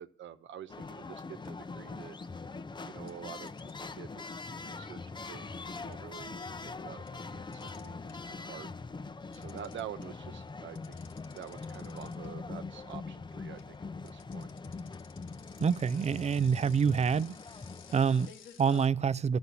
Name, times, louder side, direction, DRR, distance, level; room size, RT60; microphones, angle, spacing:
voice 1, 0.0-2.2 2.8-8.0 8.2-8.7 9.3-11.0 11.3-13.8 14.0-14.5, right 9 dB, 70° right, 1.2 m, -47 dB
sound 1, 0.7-18.3, left 4 dB, 20° left, 0.7 m, -43 dB
sound 2, 1.1-1.2 1.4-2.4 3.1-8.5 8.7-18.9, left 7 dB, 75° left, 1.4 m, -55 dB
voice 2, 15.6-17.4 17.9-19.4, right 6 dB, 35° right, 0.5 m, -27 dB
12.5 x 7.2 x 8.1 m
cardioid pair, 90°, 20 cm